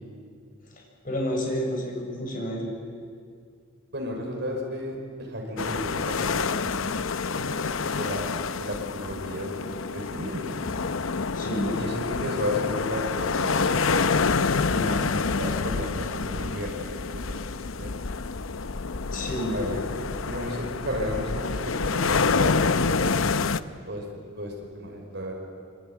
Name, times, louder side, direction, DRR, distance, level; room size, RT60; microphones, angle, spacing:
voice 1, 1.0-2.7 11.3-11.7 19.1-19.6, equal, 40° left, 0 dB, 6.9 m, -29 dB
voice 2, 3.9-10.5 11.7-13.8 14.7-16.9 17.3-17.4 17.8-18.0 19.5-19.8 20.3-23.3 23.9-24.0 24.4-25.3, left 1 dB, 55° right, 0 dB, 5.6 m, -33 dB
sound 1, 5.6-23.6, left 4 dB, 80° left, 0.8 m, -27 dB
26.0 x 24.0 x 9.4 m, 2.1 s
head